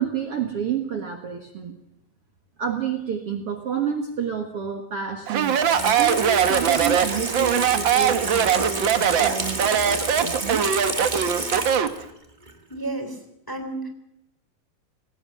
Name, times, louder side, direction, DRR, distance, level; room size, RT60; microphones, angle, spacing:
voice 1, 0.0-1.8 2.6-10.7, right 7 dB, 50° right, 5 dB, 2.1 m, -29 dB
Speech, 5.3-12.0, right 8 dB, 70° right, 1.1 m, -21 dB
Water tap faucet / Sink (filling or washing), 5.4-12.1 12.5-12.6, right 2 dB, 20° right, 1.3 m, -30 dB
voice 2, 12.7-13.2 13.5-13.9, right 2 dB, 5° left, 6 dB, 2.7 m, -31 dB
21.0 x 19.0 x 7.8 m, 0.80 s
omnidirectional pair, 4.0 m